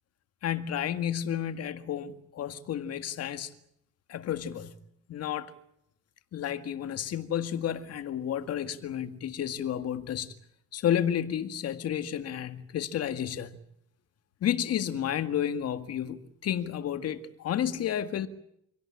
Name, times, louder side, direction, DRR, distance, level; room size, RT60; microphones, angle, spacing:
voice 1, 0.4-3.5 4.1-4.8 5.1-5.5 6.3-10.3 10.7-13.6 14.4-18.3, left 10 dB, 45° left, 1.9 m, -31 dB
26.0 x 18.0 x 9.8 m
cardioid pair, 160°, 33 cm